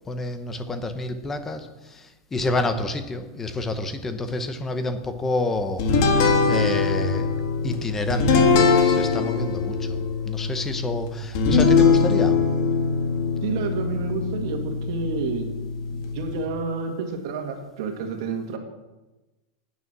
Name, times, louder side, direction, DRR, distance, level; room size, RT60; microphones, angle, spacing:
voice 1, 0.1-5.9 6.1-7.3 7.6-12.4, left 2 dB, 10° left, 9 dB, 0.8 m, -29 dB
sound 1, 5.8-16.4, left 4 dB, 50° left, 1.7 m, -22 dB
voice 2, 13.4-15.5 16.0-18.6, right 4 dB, 60° right, 4 dB, 1.9 m, -29 dB
9.4 x 9.3 x 6.1 m, 1.1 s
supercardioid pair, 160°, 3 cm